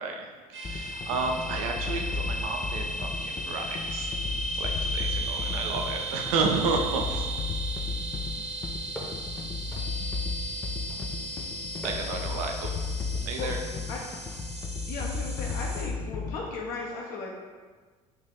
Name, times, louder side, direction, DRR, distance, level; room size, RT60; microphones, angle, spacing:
voice 1, 0.0-4.2 4.5-7.3 11.8-12.7 13.2-13.6, right 4 dB, 60° right, 3 dB, 0.6 m, -31 dB
sound 1, 0.5-15.8, right 1 dB, 35° right, 1.0 m, -36 dB
sound 2, 0.6-16.6, left 4 dB, 20° left, 0.3 m, -35 dB
sound 3, 8.9-9.4 9.7-10.2 10.9-11.3 11.7-12.3 13.1-13.5 14.3-14.6 15.4-15.8, left 1 dB, 5° left, 0.9 m, -43 dB
voice 2, 14.9-17.3, left 3 dB, 50° left, -2 dB, 0.7 m, -36 dB
4.0 x 2.6 x 3.7 m, 1.4 s
figure-of-eight pair, 65°, 20 cm